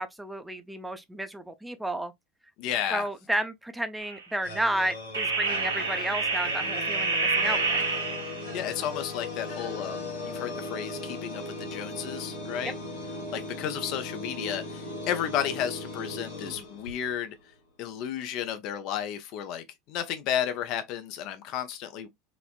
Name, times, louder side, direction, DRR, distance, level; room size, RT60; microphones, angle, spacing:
voice 1, 0.0-2.1 2.9-7.9 12.6-12.7, right 1 dB, 5° right, 0.5 m, -32 dB
voice 2, 2.6-3.1 8.5-12.7 13.3-17.4 17.8-22.1, left 10 dB, 55° left, 0.5 m, -33 dB
sound 1, 4.0-4.2 5.1-8.5, right 4 dB, 90° right, 0.6 m, -28 dB
sound 2, 4.4-17.4, left 2 dB, 85° left, 1.1 m, -38 dB
3.0 x 2.0 x 2.3 m
hypercardioid pair, 85°, 0 cm